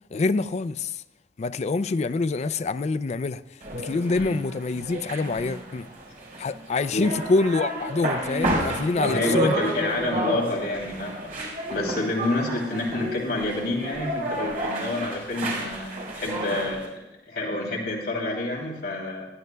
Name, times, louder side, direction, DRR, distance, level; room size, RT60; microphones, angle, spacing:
voice 1, 0.1-0.9 1.4-3.4 3.7-5.9 6.4-9.6, left 3 dB, 40° left, 0.4 m, -25 dB
sound 1, 3.6-16.9, right 1 dB, 50° right, 4.3 m, -31 dB
voice 2, 9.0-19.3, left 2 dB, 60° left, 2.8 m, -29 dB
20.0 x 13.0 x 2.3 m
head